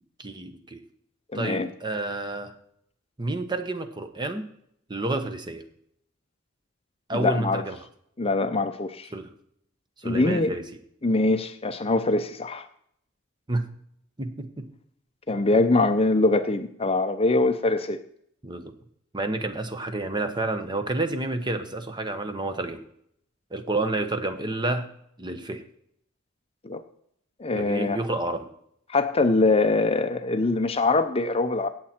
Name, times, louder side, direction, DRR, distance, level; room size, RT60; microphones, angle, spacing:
voice 1, 0.2-0.8 1.3-2.5 3.2-4.4 4.9-5.6 7.1-7.8 9.1-9.3 10.0-10.6 13.5-13.7 14.2-14.7 18.4-18.7 19.1-22.8 23.5-24.9 25.2-25.6 27.5-28.5, right 2 dB, 20° right, 9 dB, 1.1 m, -29 dB
voice 2, 1.3-1.7 7.1-7.6 8.2-9.1 10.0-10.5 11.0-12.6 15.3-18.0 26.6-26.8 27.4-28.0 28.9-31.7, left 2 dB, 30° left, 9 dB, 0.7 m, -23 dB
17.0 x 7.5 x 4.4 m, 0.70 s
head